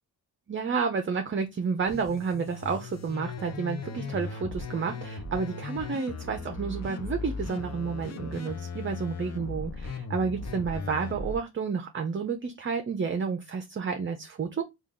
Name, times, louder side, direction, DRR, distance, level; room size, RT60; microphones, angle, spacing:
voice 1, 0.5-14.6, right 5 dB, 30° right, 0.6 m, -30 dB
sound 1, 1.9-11.4, left 3 dB, 45° left, 0.8 m, -37 dB
3.4 x 2.4 x 3.8 m
cardioid pair, 75°, 37 cm